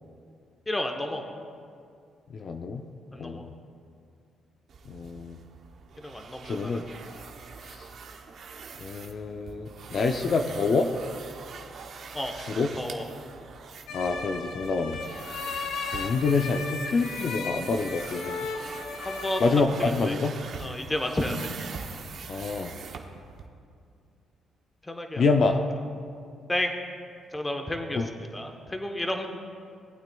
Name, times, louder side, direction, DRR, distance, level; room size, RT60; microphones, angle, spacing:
voice 1, 0.7-1.2 3.1-3.4 6.0-6.8 12.1-12.4 12.8-13.1 19.0-19.5 19.8-20.1 20.6-21.4 24.8-25.2 26.5-26.8 27.3-29.3, left 1 dB, 15° left, 4 dB, 1.0 m, -31 dB
voice 2, 2.3-2.8 3.1-3.5 4.9-5.4 6.4-6.8 7.6-7.9 8.8-10.9 12.4-12.7 13.9-15.0 15.9-18.5 19.4-20.3 22.3-22.7 25.2-25.6 28.0-28.1, left 4 dB, 55° left, 5 dB, 0.5 m, -27 dB
sound 1, 4.7-23.5, right 5 dB, 60° right, 0.8 m, -43 dB
sound 2, 13.9-19.5, left 4 dB, 80° left, 0.9 m, -36 dB
18.0 x 9.0 x 2.3 m, 2.3 s
cardioid pair, 90°, 0 cm